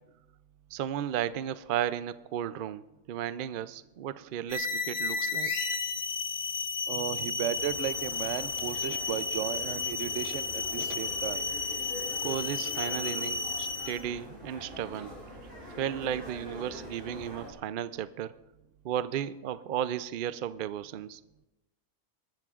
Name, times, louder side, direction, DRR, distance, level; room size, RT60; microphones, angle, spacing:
voice 1, 0.7-5.5 12.2-15.2 15.8-18.4 18.8-21.2, right 10 dB, 85° right, 14 dB, 0.4 m, -34 dB
sound 1, 4.5-14.1, left 4 dB, 30° left, 1.4 m, -33 dB
voice 2, 6.9-11.4, right 10 dB, 65° right, 14 dB, 0.9 m, -35 dB
sound 2, 7.5-17.5, equal, 25° right, 5.0 m, -45 dB
21.0 x 13.5 x 2.4 m, 0.97 s
omnidirectional pair, 1.5 m